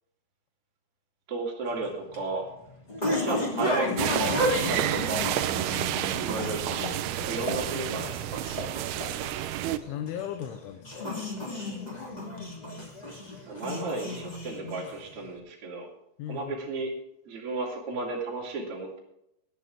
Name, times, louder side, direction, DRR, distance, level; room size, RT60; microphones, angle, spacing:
voice 1, 1.3-2.4 3.0-4.3 4.6-5.3 6.2-8.4 8.9-9.1 13.5-15.9 16.3-16.9 17.2-19.0, right 2 dB, 35° right, -3 dB, 3.2 m, -33 dB
sound 1, 1.7-15.2, left 1 dB, 15° left, 1.9 m, -33 dB
sound 2, 4.0-9.8, right 13 dB, 85° right, 2.2 m, -30 dB
voice 2, 5.6-6.2 7.2-7.9 9.9-11.2 16.2-16.6, left 10 dB, 90° left, 7 dB, 3.4 m, -38 dB
19.0 x 10.5 x 3.6 m, 0.80 s
omnidirectional pair, 5.4 m